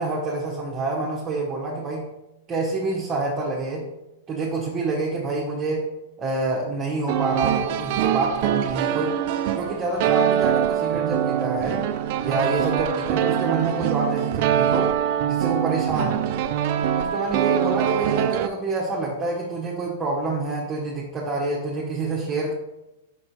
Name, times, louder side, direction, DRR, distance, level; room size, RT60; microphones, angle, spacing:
voice 1, 0.0-2.1 2.5-3.9 4.3-5.9 6.2-9.2 9.5-11.8 12.2-14.9 15.3-16.2 17.0-22.5, right 3 dB, 25° right, -4 dB, 1.2 m, -27 dB
sound 1, 7.1-18.5, right 10 dB, 55° right, 0.5 m, -23 dB
5.5 x 4.3 x 4.2 m, 0.95 s
hypercardioid pair, 125°, 0 cm